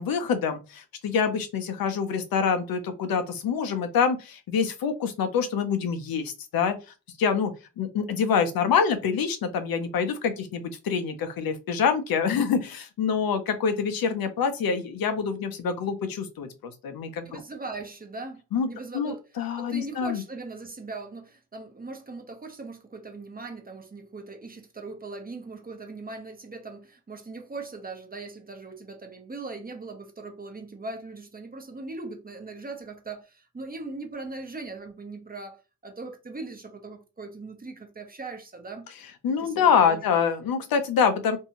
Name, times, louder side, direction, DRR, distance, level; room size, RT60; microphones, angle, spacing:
voice 1, 0.0-6.8 7.2-7.5 7.8-17.4 18.5-18.7 18.9-20.2 39.2-41.4, left 6 dB, 70° left, 0.6 m, -26 dB
voice 2, 17.2-18.4 18.7-19.2 19.6-38.9 39.3-40.0, right 3 dB, 25° right, 0.8 m, -40 dB
2.6 x 2.2 x 2.9 m
cardioid pair, 55°, 36 cm